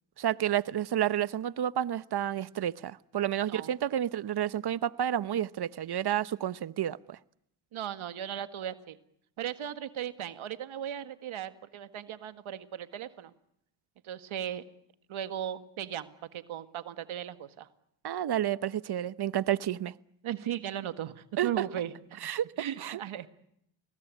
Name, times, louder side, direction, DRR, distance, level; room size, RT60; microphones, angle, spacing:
voice 1, 0.2-7.2 18.0-19.9 21.4-21.7 22.2-22.4 22.8-23.0, right 11 dB, 50° right, 16 dB, 1.0 m, -30 dB
voice 2, 7.7-9.0 9.4-13.3 14.0-14.6 15.1-17.7 20.2-22.3 22.6-23.3, right 10 dB, 75° right, 10 dB, 1.8 m, -37 dB
29.0 x 19.5 x 8.4 m, 0.76 s
cardioid pair, 80°, 49 cm